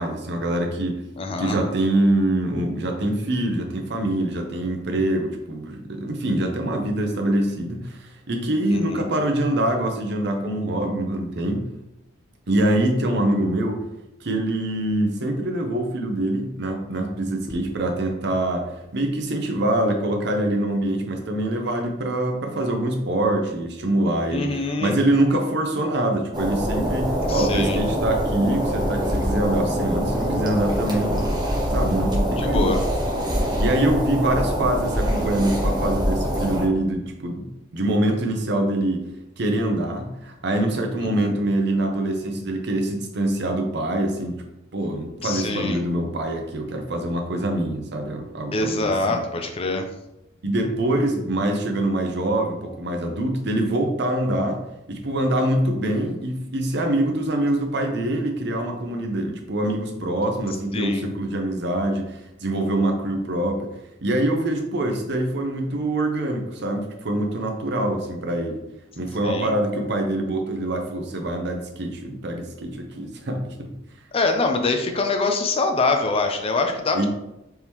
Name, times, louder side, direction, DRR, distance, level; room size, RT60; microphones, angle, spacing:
voice 1, 0.0-1.0 1.4-11.7 12.5-13.9 14.2-24.5 24.8-31.3 31.7-32.8 33.4-39.0 39.4-44.4 44.7-49.2 50.4-54.6 54.9-63.7 64.0-68.6 69.0-73.7 76.9-77.1, right 1 dB, 60° right, 4 dB, 0.7 m, -24 dB
voice 2, 1.2-1.6 8.7-9.0 24.3-25.0 27.3-27.8 32.4-32.8 41.0-41.3 45.2-45.8 48.5-49.9 60.7-61.1 69.2-69.5 74.1-77.0, left 3 dB, 30° left, 5 dB, 0.4 m, -24 dB
sound 1, 26.3-36.7, equal, 20° right, 0.8 m, -24 dB
4.5 x 2.9 x 3.5 m, 0.92 s
head